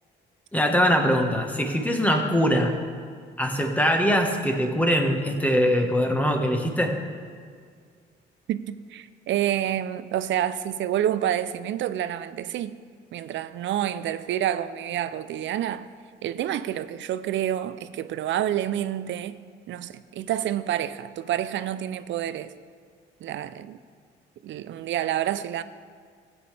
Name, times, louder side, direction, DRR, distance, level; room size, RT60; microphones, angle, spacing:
voice 1, 0.5-2.7 3.4-6.9, equal, 5° left, 1.4 m, -22 dB
voice 2, 8.5-12.8 13.1-15.9 16.2-19.4 19.7-22.5 23.2-23.8 24.4-25.6, right 11 dB, 70° right, 0.5 m, -28 dB
15.5 x 8.7 x 3.4 m
cardioid pair, 90°, 20 cm